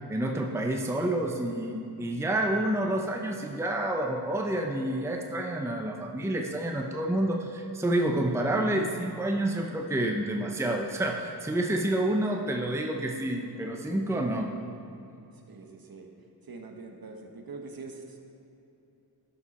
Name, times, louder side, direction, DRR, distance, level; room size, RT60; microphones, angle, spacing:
voice 1, 0.1-14.5, right 1 dB, 5° right, 2 dB, 0.6 m, -29 dB
voice 2, 15.5-16.1 16.4-18.2, right 3 dB, 60° right, 3 dB, 1.0 m, -44 dB
11.5 x 5.2 x 4.1 m, 2.8 s
wide cardioid pair, 60°, 40 cm